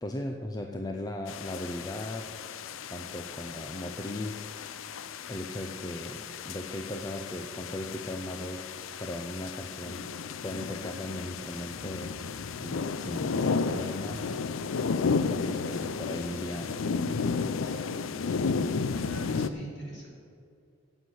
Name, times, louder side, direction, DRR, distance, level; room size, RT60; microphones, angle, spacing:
voice 1, 0.0-2.3 2.9-4.4 5.3-8.6 9.0-10.1 10.4-12.2 12.6-14.2 15.3-16.8 17.6-17.9, left 1 dB, 20° left, 3 dB, 0.6 m, -37 dB
sound 1, 1.3-19.5, left 5 dB, 85° left, 0.5 m, -33 dB
voice 2, 19.0-20.1, right 1 dB, 65° left, -5 dB, 3.6 m, -42 dB
9.9 x 8.2 x 7.7 m, 2.4 s
head